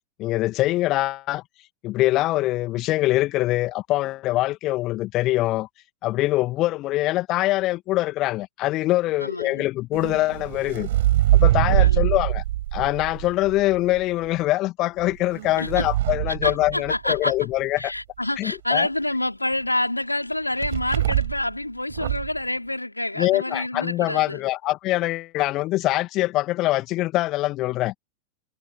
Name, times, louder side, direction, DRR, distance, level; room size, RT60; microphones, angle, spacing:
voice 1, 0.2-1.4 1.8-5.7 6.0-10.9 11.3-12.4 12.7-17.9 18.4-18.9 23.2-27.9, left 17 dB, 35° left, 2.4 m, -23 dB
voice 2, 9.2-9.7 11.7-12.2 15.6-15.8 16.3-17.3 17.8-24.4, left 1 dB, 85° left, 3.5 m, -27 dB
sound 1, 9.9-14.0 15.0-17.3 20.6-21.5 21.9-22.4, right 14 dB, 55° right, 6.6 m, -23 dB
figure-of-eight pair, 90°, 0 cm